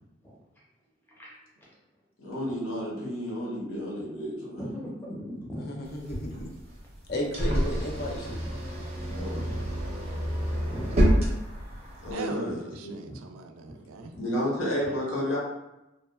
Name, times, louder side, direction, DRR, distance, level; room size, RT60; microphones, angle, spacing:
voice 1, 2.2-4.6 9.1-9.5 12.0-12.9 14.2-15.4, equal, 75° left, -4 dB, 0.9 m, -31 dB
voice 2, 4.6-5.9 6.3-6.4 8.9-9.1 9.5-9.7 10.7-11.0 13.7-13.8 14.1-14.2 14.7-15.2, equal, 10° left, -6 dB, 0.6 m, -39 dB
voice 3, 5.6-6.5 7.1-8.4, left 1 dB, 50° left, 0 dB, 0.4 m, -34 dB
sound 1, 5.9-12.1, equal, 30° right, 0.5 m, -28 dB
voice 4, 12.1-14.1, right 4 dB, 90° right, 6 dB, 0.3 m, -40 dB
2.7 x 2.2 x 2.3 m, 0.96 s
head